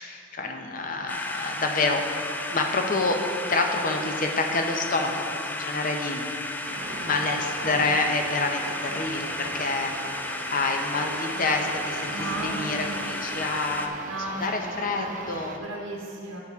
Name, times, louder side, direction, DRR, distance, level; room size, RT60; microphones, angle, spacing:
voice 1, 0.0-2.2 2.5-3.2 3.5-5.2 5.5-6.3 7.0-9.9 10.5-13.9 14.4-15.6, left 3 dB, 40° left, 3 dB, 0.7 m, -27 dB
sound 1, 1.1-13.9, left 2 dB, 10° left, 0.3 m, -34 dB
sound 2, 6.7-15.6, right 3 dB, 40° right, 0.6 m, -39 dB
voice 2, 12.1-13.2 14.0-15.2 15.6-16.4, right 1 dB, 65° right, -1 dB, 0.9 m, -35 dB
11.5 x 8.0 x 3.6 m, 2.9 s
head